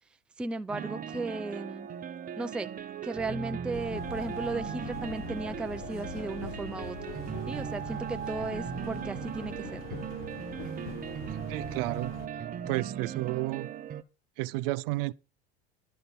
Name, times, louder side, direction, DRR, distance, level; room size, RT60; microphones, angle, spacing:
voice 1, 0.4-1.9 2.4-2.7 3.0-7.0 7.5-9.8, right 2 dB, 5° right, 0.4 m, -35 dB
sound 1, 0.7-14.0, right 8 dB, 30° right, 0.7 m, -38 dB
sound 2, 3.7-12.3, left 6 dB, 55° left, 1.0 m, -43 dB
voice 2, 11.5-12.1 12.7-13.7 14.4-15.1, right 19 dB, 65° right, 0.5 m, -31 dB
11.5 x 4.0 x 6.9 m
hypercardioid pair, 85°, 31 cm